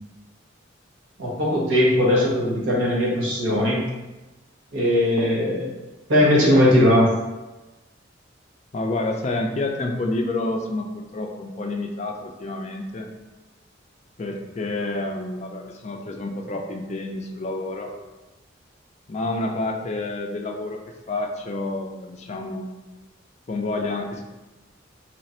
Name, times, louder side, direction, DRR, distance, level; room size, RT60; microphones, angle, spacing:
voice 1, 1.2-3.8 4.7-5.7 6.1-7.1, left 1 dB, 90° right, -4 dB, 1.1 m, -19 dB
voice 2, 8.7-13.1 14.2-17.9 19.1-20.8 21.1-22.7 23.5-24.2, left 2 dB, 35° left, 2 dB, 0.4 m, -29 dB
3.2 x 2.5 x 4.2 m, 1.1 s
head